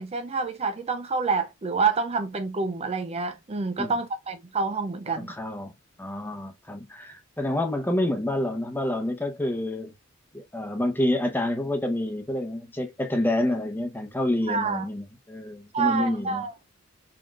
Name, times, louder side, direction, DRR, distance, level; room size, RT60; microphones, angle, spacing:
voice 1, 0.0-5.3 14.5-14.9 15.7-16.5, right 4 dB, 30° right, 0.4 m, -27 dB
voice 2, 5.2-5.7 6.0-9.9 10.3-16.5, left 1 dB, 10° left, 0.9 m, -28 dB
5.8 x 3.7 x 2.4 m
head